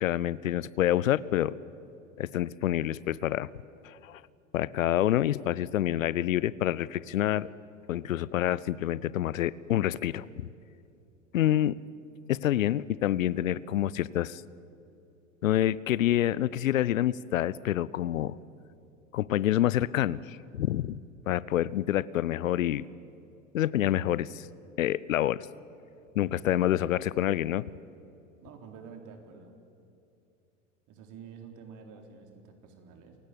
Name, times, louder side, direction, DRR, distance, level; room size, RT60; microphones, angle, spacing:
voice 1, 0.0-1.5 2.2-3.5 3.8-4.2 4.5-7.5 7.9-10.5 11.3-11.8 12.3-14.4 15.4-18.4 19.1-21.0 21.3-22.8 23.5-24.5 24.8-25.5 26.1-27.7, left 12 dB, 80° left, 21 dB, 0.7 m, -27 dB
voice 2, 26.4-26.7 28.4-29.5 30.9-33.2, right 6 dB, 50° right, 4 dB, 3.9 m, -48 dB
27.5 x 16.0 x 8.3 m, 2.7 s
hypercardioid pair, 90°, 39 cm